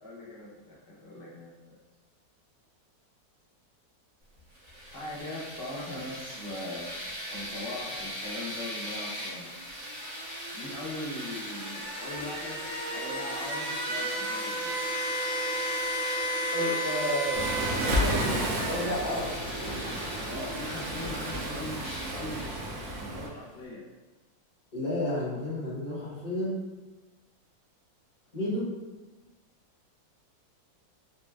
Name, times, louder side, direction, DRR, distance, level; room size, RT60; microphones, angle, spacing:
voice 1, 0.0-1.8 4.9-6.9 7.3-9.5 10.5-12.6 12.9-14.8 20.3-22.4 23.1-23.8, left 1 dB, 80° left, -7 dB, 0.5 m, -40 dB
sound 1, 4.6-23.2, equal, 65° right, 1.8 m, -35 dB
sound 2, 12.0-21.4, right 1 dB, 5° left, 1.2 m, -47 dB
voice 2, 16.5-19.4 24.7-26.6 28.3-28.7, left 1 dB, 35° left, -7 dB, 0.8 m, -32 dB
Waves surf, 17.3-23.3, right 1 dB, 80° right, 1.3 m, -32 dB
3.9 x 3.1 x 2.2 m, 1.2 s
omnidirectional pair, 2.0 m